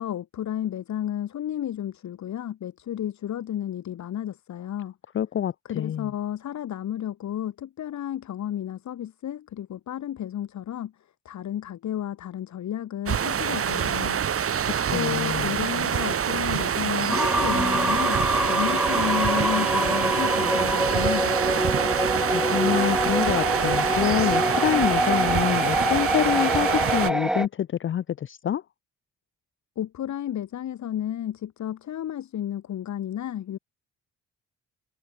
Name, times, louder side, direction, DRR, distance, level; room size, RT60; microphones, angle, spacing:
voice 1, 0.0-4.9 5.7-10.9 11.3-14.2 14.9-18.2 18.5-21.7 29.8-33.6, left 11 dB, 65° left, 3.5 m, -32 dB
voice 2, 5.1-6.1 14.6-14.7 14.9-15.5 22.3-28.6, left 10 dB, 40° left, 0.6 m, -26 dB
sound 1, 13.1-27.1, right 8 dB, 50° right, 2.1 m, -26 dB
sound 2, 17.1-27.5, equal, ahead, 0.9 m, -25 dB
cardioid pair, 90°, 30 cm